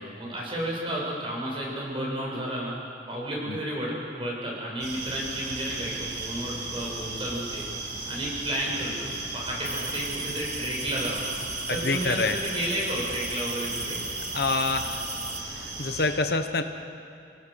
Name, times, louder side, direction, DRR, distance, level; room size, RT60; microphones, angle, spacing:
voice 1, 0.0-2.7 3.1-7.6 8.1-11.3 11.7-14.0, right 1 dB, 30° right, -3 dB, 6.9 m, -32 dB
sound 1, 4.8-16.1, right 3 dB, 75° right, 6.8 m, -36 dB
sound 2, 9.6-15.4, right 2 dB, 5° right, 0.5 m, -37 dB
voice 2, 11.8-12.4 14.3-15.0 15.5-16.6, left 3 dB, 55° left, 7 dB, 1.0 m, -26 dB
28.5 x 18.0 x 6.9 m, 2.5 s
head